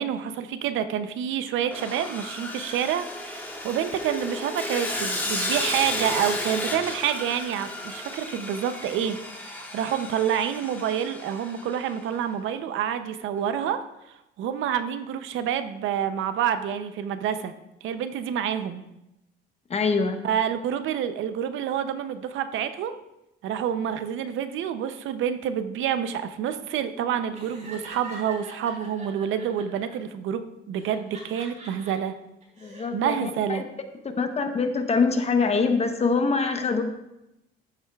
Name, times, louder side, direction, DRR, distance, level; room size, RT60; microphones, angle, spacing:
voice 1, 0.0-13.8 14.1-17.5 17.8-18.8 20.2-23.0 23.4-32.1 32.9-33.6, right 9 dB, 80° right, 10 dB, 0.6 m, -28 dB
Sawing, 1.7-12.0, left 1 dB, 10° left, 1.4 m, -33 dB
voice 2, 19.7-20.3 32.6-33.6 34.2-36.8, left 4 dB, 30° left, 6 dB, 0.8 m, -24 dB
Laughter, 27.3-29.9 30.8-31.9 32.4-32.8, right 2 dB, 40° right, 3.3 m, -44 dB
13.5 x 7.7 x 2.3 m, 0.89 s
cardioid pair, 130°, 20 cm